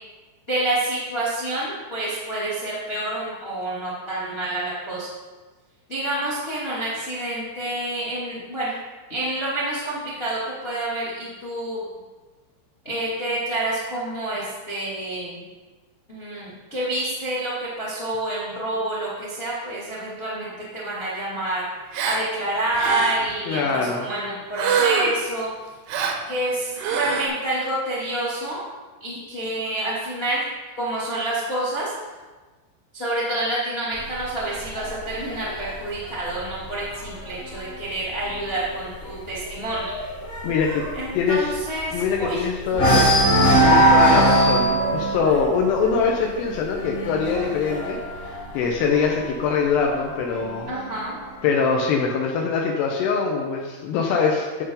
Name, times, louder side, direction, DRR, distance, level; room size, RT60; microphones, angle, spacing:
voice 1, 0.5-5.1 5.9-8.7 9.1-11.8 12.8-15.4 16.1-21.6 22.0-25.5 26.3-28.6 29.0-30.4 30.8-31.9 32.9-39.9 40.9-42.4 42.7-42.9 50.7-51.2, right 1 dB, 60° left, -7 dB, 0.6 m, -28 dB
Gasp, 21.9-22.3 22.7-23.3 24.6-25.3 25.9-26.2 26.8-27.3, right 6 dB, 85° right, 2.3 m, -24 dB
voice 2, 23.5-24.1 40.4-40.8 41.1-41.5 41.9-43.1 43.6-48.0 48.5-50.7 51.4-54.6, left 5 dB, 85° left, 0 dB, 2.3 m, -23 dB
sound 1, 34.0-37.6 38.0-38.3 38.6-38.7 39.1-42.3 42.7-49.2 50.1-51.1, right 1 dB, 25° left, 1.7 m, -21 dB
11.5 x 6.9 x 3.9 m, 1.3 s
omnidirectional pair, 6.0 m